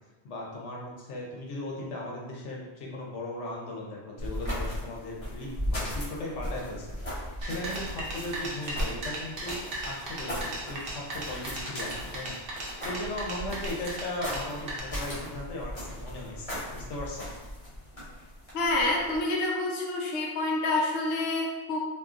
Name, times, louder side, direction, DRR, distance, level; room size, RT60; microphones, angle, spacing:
voice 1, 0.2-12.4 12.8-17.3, left 1 dB, 85° left, -2 dB, 1.0 m, -37 dB
sound 1, 4.2-19.2, equal, 30° left, 1.0 m, -37 dB
sound 2, 7.4-14.8, right 1 dB, 60° right, 0.9 m, -37 dB
voice 2, 18.5-21.8, left 2 dB, 65° left, -3 dB, 0.8 m, -28 dB
3.7 x 2.7 x 2.5 m, 1.2 s
omnidirectional pair, 1.2 m